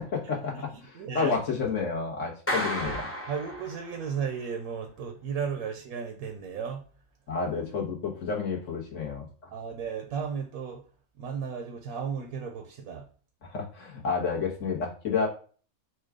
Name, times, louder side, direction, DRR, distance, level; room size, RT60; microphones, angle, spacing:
voice 1, 0.0-3.0 7.3-9.5 13.4-15.3, left 5 dB, 60° left, -2 dB, 1.4 m, -30 dB
voice 2, 0.9-1.3 2.8-3.0 3.3-6.8 9.5-10.8 11.2-13.1, right 6 dB, 80° right, 4 dB, 1.2 m, -34 dB
Clapping, 2.5-4.2, equal, 15° left, 0.4 m, -33 dB
4.4 x 2.3 x 4.7 m, 0.41 s
omnidirectional pair, 1.5 m